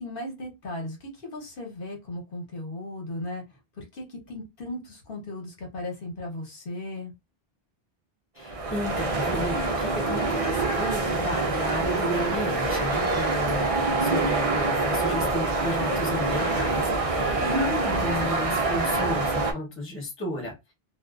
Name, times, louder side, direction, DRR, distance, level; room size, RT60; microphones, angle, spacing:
voice 1, 0.0-3.4 3.8-7.1, left 1 dB, 60° left, 0 dB, 1.1 m, -36 dB
voice 2, 8.4-20.5, left 1 dB, 15° left, -1 dB, 0.8 m, -33 dB
sound 1, 8.4-19.5, right 2 dB, 45° right, 0.5 m, -25 dB
2.4 x 2.3 x 2.3 m, 0.23 s
omnidirectional pair, 1.1 m